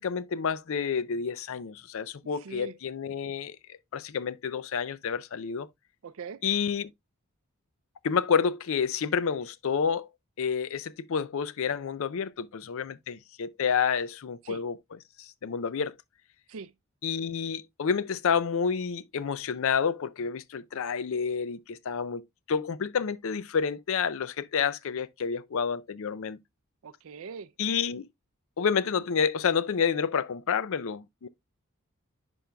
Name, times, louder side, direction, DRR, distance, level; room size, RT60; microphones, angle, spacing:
voice 1, 0.0-5.7 6.4-6.9 8.0-10.1 10.4-14.8 15.2-15.9 17.0-22.2 22.5-26.4 27.6-28.1 28.6-31.3, left 6 dB, 65° left, 0.5 m, -29 dB
voice 2, 2.4-2.7 6.0-6.4 14.4-14.6 16.5-16.7 26.8-27.5, right 5 dB, 65° right, 0.4 m, -41 dB
10.0 x 5.4 x 2.2 m
head